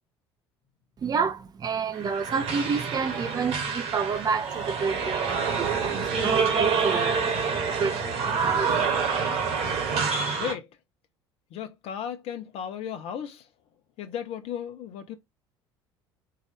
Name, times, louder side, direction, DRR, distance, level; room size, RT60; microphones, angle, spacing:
voice 1, 1.0-9.4, right 5 dB, 30° right, 0.6 m, -30 dB
sound 1, 1.9-10.5, right 5 dB, 50° right, 1.5 m, -27 dB
voice 2, 10.3-10.7 11.5-13.4 14.0-15.2, left 9 dB, 50° left, 0.9 m, -35 dB
4.7 x 2.6 x 3.4 m
figure-of-eight pair, 60°, 13 cm